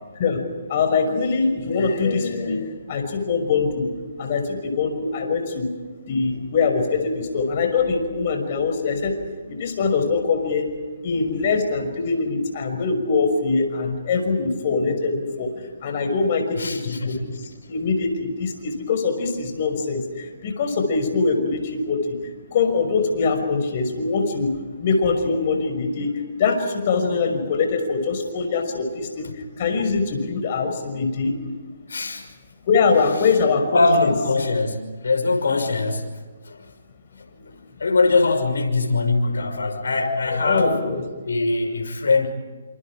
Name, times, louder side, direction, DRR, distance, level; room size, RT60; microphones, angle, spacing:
voice 1, 0.2-3.9 4.2-5.7 6.1-9.2 9.5-10.7 11.0-15.5 15.8-22.2 22.5-24.5 24.8-31.3 32.7-34.1 40.3-41.0, left 4 dB, 45° left, 5 dB, 5.9 m, -23 dB
voice 2, 16.6-17.2 29.2-29.3 31.9-32.3 33.7-36.1 36.5-36.6 37.8-40.8 41.2-42.3, left 3 dB, 85° left, 4 dB, 5.8 m, -21 dB
28.5 x 27.5 x 5.0 m, 1.4 s
hypercardioid pair, 155°, 0 cm